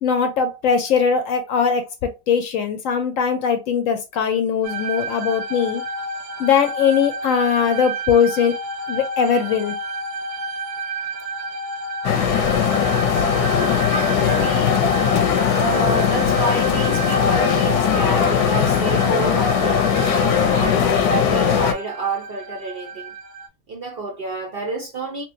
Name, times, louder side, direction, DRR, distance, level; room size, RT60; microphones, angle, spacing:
voice 1, 0.0-5.8 6.4-8.6 8.9-9.8, left 6 dB, 70° left, 0.9 m, -20 dB
sound 1, 4.6-23.5, right 2 dB, 85° right, 1.1 m, -31 dB
sound 2, 12.0-21.7, left 7 dB, 90° left, 1.2 m, -19 dB
voice 2, 14.2-14.9 15.5-23.1 23.7-25.2, right 3 dB, 55° right, 0.6 m, -28 dB
3.0 x 2.9 x 2.5 m
omnidirectional pair, 1.6 m